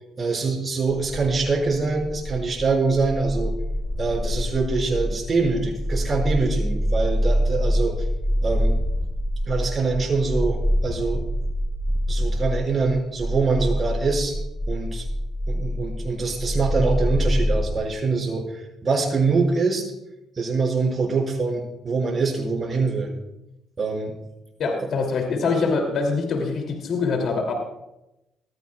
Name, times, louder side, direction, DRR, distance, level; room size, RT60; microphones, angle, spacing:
voice 1, 0.2-3.5 4.0-8.1 8.4-8.8 9.5-11.2 12.1-14.3 14.7-15.1 15.5-19.8 20.4-23.1 23.8-24.1 24.6-24.7, right 4 dB, 40° right, 0 dB, 5.8 m, -24 dB
sound 1, 0.9-17.8, equal, 5° right, 4.0 m, -26 dB
voice 2, 24.6-27.5, left 4 dB, 65° left, 2 dB, 2.8 m, -24 dB
20.5 x 15.0 x 2.4 m, 0.92 s
supercardioid pair, 60°, 0 cm